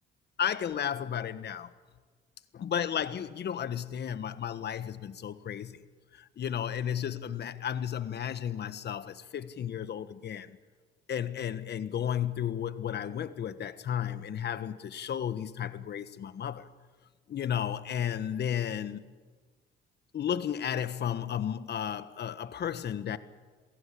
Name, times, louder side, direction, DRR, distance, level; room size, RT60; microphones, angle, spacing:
voice 1, 0.4-1.7 2.5-5.8 6.1-10.6 11.1-16.7 17.3-19.0 20.1-23.2, left 9 dB, 55° left, 1.4 m, -33 dB
27.5 x 17.5 x 8.6 m
cardioid pair, 90°, 20 cm